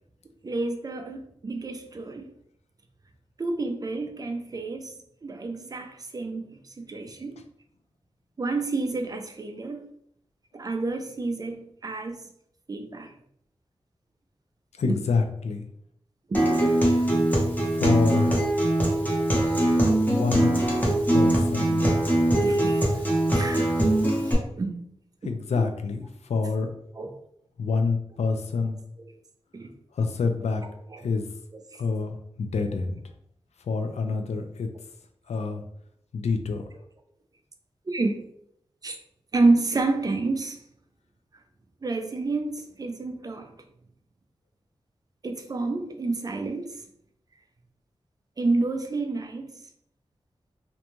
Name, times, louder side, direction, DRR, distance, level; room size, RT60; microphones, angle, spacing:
voice 1, 0.4-2.3 3.4-4.9 5.2-7.4 8.4-9.9 10.5-12.3 12.7-13.1 14.8-14.9 16.3-16.4 22.4-22.9 23.3-23.7 24.1-24.8 25.2-25.3 27.0-27.1 29.0-29.1 29.5-29.7 30.9-31.0 31.7-31.8 37.9-38.2 38.8-39.0 39.3-40.6 41.8-43.5 45.2-46.8 48.4-49.5, right 3 dB, 35° right, 5 dB, 0.3 m, -29 dB
voice 2, 14.8-15.6 17.7-18.3 20.1-20.5 21.1-21.9 25.2-26.7 27.6-28.8 29.9-30.6 31.0-31.2 31.8-33.0 33.7-34.7 35.3-35.6 36.1-36.6, left 4 dB, 85° left, 6 dB, 0.4 m, -27 dB
Acoustic guitar, 16.3-24.3, right 1 dB, 15° left, 0.7 m, -22 dB
2.6 x 2.2 x 2.9 m, 0.71 s
wide cardioid pair, 120°, 11 cm